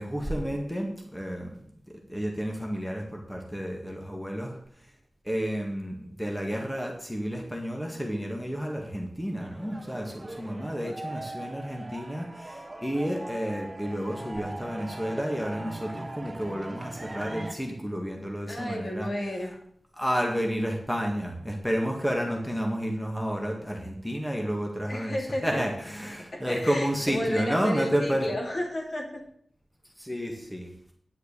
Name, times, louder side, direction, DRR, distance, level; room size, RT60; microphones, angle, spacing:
voice 1, 0.0-1.8 2.1-4.9 5.2-19.1 19.9-25.2 25.4-28.3 30.0-30.7, equal, 5° left, 1 dB, 1.8 m, -31 dB
sound 1, 9.4-17.5, right 1 dB, 25° right, 1.1 m, -40 dB
voice 2, 10.4-11.0 18.5-19.6 24.9-25.6 26.3-29.2, left 1 dB, 50° left, 0 dB, 2.7 m, -33 dB
10.0 x 6.5 x 6.8 m, 0.66 s
wide cardioid pair, 110°, 0 cm